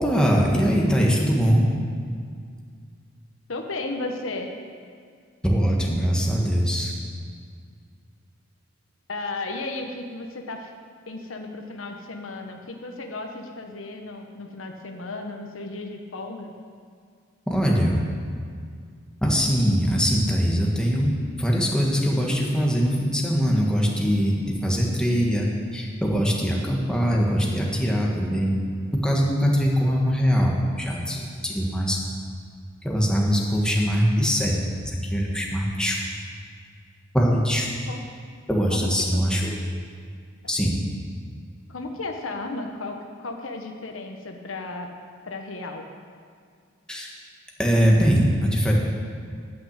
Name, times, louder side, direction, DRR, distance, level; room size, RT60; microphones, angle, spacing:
voice 1, 0.0-1.6 5.4-6.9 17.5-18.0 19.2-25.5 25.7-28.6 29.0-32.0 32.8-36.1 37.1-37.7 38.5-39.6 40.5-40.7 46.9-47.1 47.6-48.7, equal, 5° left, -2 dB, 1.5 m, -22 dB
voice 2, 3.5-4.5 9.1-10.7 11.1-16.5 37.9-38.0 38.7-39.2 41.7-44.9 45.3-45.8, left 2 dB, 85° left, 3 dB, 1.1 m, -34 dB
11.5 x 6.0 x 8.1 m, 2.1 s
head